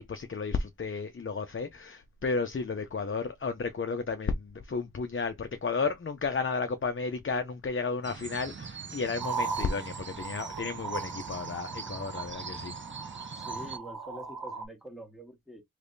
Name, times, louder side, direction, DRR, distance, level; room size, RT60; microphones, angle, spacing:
voice 1, 0.0-12.7, left 4 dB, 35° left, 0.5 m, -33 dB
sound 1, 8.0-13.8, right 5 dB, 35° right, 0.5 m, -43 dB
sound 2, 9.2-14.6, right 4 dB, 85° right, 0.7 m, -38 dB
voice 2, 13.4-15.6, equal, ahead, 1.4 m, -45 dB
3.3 x 3.3 x 2.6 m
wide cardioid pair, 40°, 35 cm